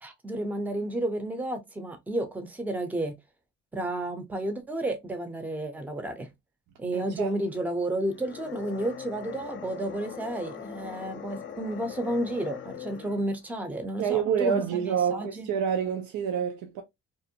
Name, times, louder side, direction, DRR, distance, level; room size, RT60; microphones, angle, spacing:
voice 1, 0.0-3.1 3.7-6.3 6.8-15.5, right 1 dB, 5° right, 0.6 m, -31 dB
voice 2, 6.9-7.4 14.0-16.8, right 8 dB, 80° right, 0.5 m, -28 dB
sound 1, 8.0-13.4, left 8 dB, 40° left, 0.5 m, -41 dB
2.5 x 2.1 x 2.7 m
cardioid pair, 90°, 30 cm